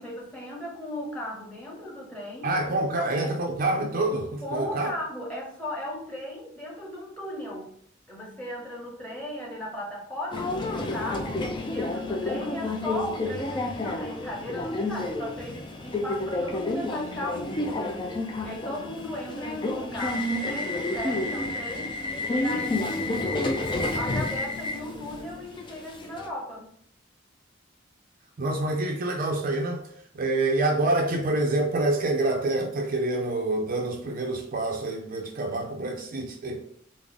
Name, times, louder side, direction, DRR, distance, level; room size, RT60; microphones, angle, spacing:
voice 1, 0.0-3.4 4.4-7.7 8.1-18.0 18.4-22.0 22.3-26.8, left 1 dB, 5° left, 0.9 m, -37 dB
voice 2, 2.4-4.9 28.4-29.8 30.1-36.6, right 2 dB, 45° right, 0.4 m, -27 dB
Subway metro underground, 10.3-26.3, left 2 dB, 25° left, 0.4 m, -30 dB
3.6 x 2.0 x 3.5 m
head